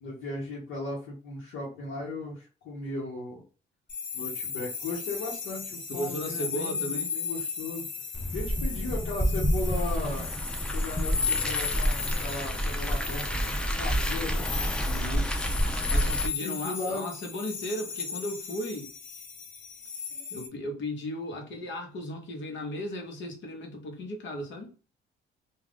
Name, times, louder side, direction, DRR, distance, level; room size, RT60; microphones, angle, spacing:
voice 1, 0.0-3.4 4.1-7.9 8.3-10.3 10.7-14.5 15.8-16.1 16.4-17.1 20.1-20.3, left 2 dB, 90° left, 1.0 m, -37 dB
sound 1, 3.9-20.5, left 5 dB, 45° left, 0.8 m, -36 dB
voice 2, 5.9-7.2 14.9-15.3 15.9-18.9 20.3-24.7, left 1 dB, 70° left, 1.0 m, -36 dB
Car, 8.1-16.3, equal, 5° left, 0.5 m, -28 dB
2.4 x 2.3 x 3.4 m
cardioid pair, 90°, 20 cm